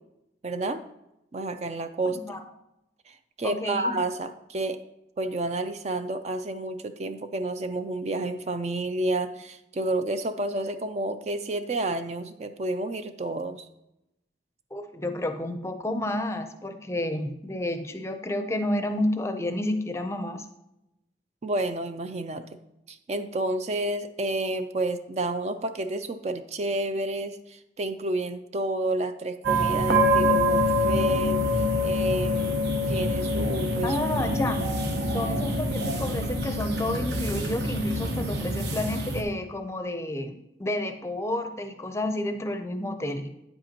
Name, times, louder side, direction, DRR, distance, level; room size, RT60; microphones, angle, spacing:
voice 1, 0.4-0.8 1.3-2.2 3.1-4.8 5.2-13.7 21.4-22.6 22.9-32.6 32.9-34.0, right 2 dB, 40° right, 9 dB, 0.4 m, -30 dB
voice 2, 3.4-4.0 14.7-20.5 33.8-34.6 35.1-43.3, left 1 dB, 15° left, 7 dB, 0.5 m, -30 dB
sound 1, 29.4-39.2, equal, 75° right, 1.1 m, -25 dB
9.1 x 7.9 x 2.9 m, 0.88 s
head